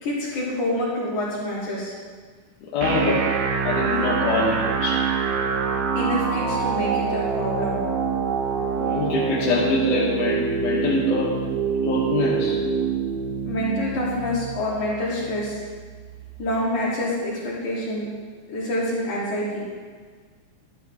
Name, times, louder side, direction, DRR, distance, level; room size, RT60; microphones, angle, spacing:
voice 1, 0.0-1.9 6.0-7.8 13.4-15.6 16.4-18.1 18.5-19.6, left 1 dB, 70° left, -7 dB, 4.5 m, -27 dB
voice 2, 2.7-3.3 3.6-5.1 8.8-11.4 11.8-12.6, left 2 dB, 90° left, -5 dB, 2.9 m, -24 dB
sound 1, 2.8-16.8, right 6 dB, 65° right, 2.0 m, -26 dB
12.5 x 11.0 x 3.6 m, 1.5 s
omnidirectional pair, 3.5 m